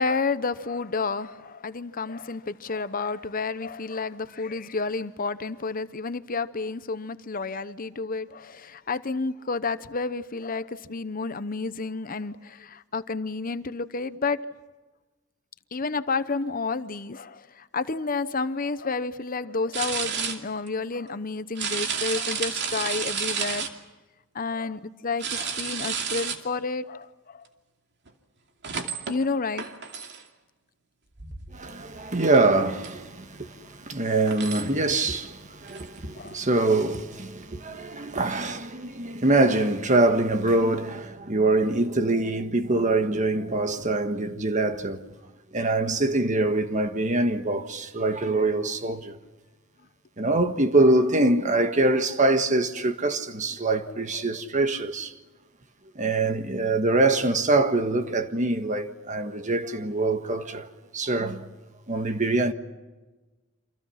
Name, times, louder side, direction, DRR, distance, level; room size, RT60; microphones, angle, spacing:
voice 1, 0.0-14.5 15.7-23.7 24.3-27.5 29.1-29.7 36.2-36.4, left 4 dB, 45° left, 0.8 m, -30 dB
sound 1, 19.7-20.4 20.7-20.8 21.6-23.7 25.2-26.4 28.1-28.2 28.6-29.2 29.6-30.2 31.2-31.6 31.9-32.1 32.3-32.5 32.8-32.9 33.7-33.8 34.3-34.7 35.7-35.8 36.3-36.4, right 6 dB, 55° right, 2.6 m, -31 dB
voice 2, 31.5-45.0 45.5-49.2 50.2-55.1 55.9-60.7 60.9-61.4 61.9-62.5, right 2 dB, 35° right, 1.6 m, -24 dB
29.0 x 26.5 x 5.8 m
head